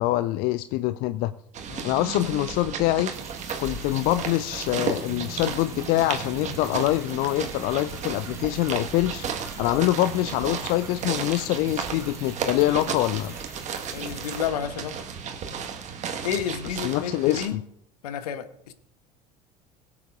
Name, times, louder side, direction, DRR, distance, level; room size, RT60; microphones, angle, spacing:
voice 1, 0.0-1.3 1.8-3.1 3.6-9.3 9.6-13.3 16.7-17.6, left 16 dB, 45° left, 15 dB, 0.5 m, -25 dB
sound 1, 1.5-17.5, right 6 dB, 35° right, 1.6 m, -34 dB
sound 2, 3.1-14.5, right 3 dB, 15° right, 2.6 m, -45 dB
voice 2, 13.9-15.0 16.2-17.6 18.0-18.7, left 9 dB, 65° left, 12 dB, 1.1 m, -31 dB
21.5 x 8.4 x 2.5 m, 0.74 s
figure-of-eight pair, 65°, 21 cm